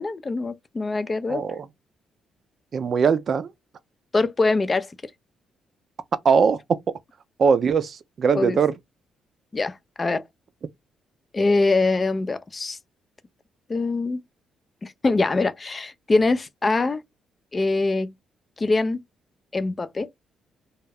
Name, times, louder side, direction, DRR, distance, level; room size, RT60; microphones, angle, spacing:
voice 1, 0.0-1.5 4.1-4.9 8.3-8.6 9.5-10.2 11.3-12.8 13.7-14.2 14.8-17.0 17.5-18.1 18.6-19.0 19.5-20.1, left 3 dB, 30° left, 0.3 m, -23 dB
voice 2, 1.3-1.6 2.7-3.5 6.2-6.6 7.4-8.7, right 6 dB, 50° right, 0.3 m, -20 dB
2.3 x 2.1 x 3.3 m
cardioid pair, 90°, 0 cm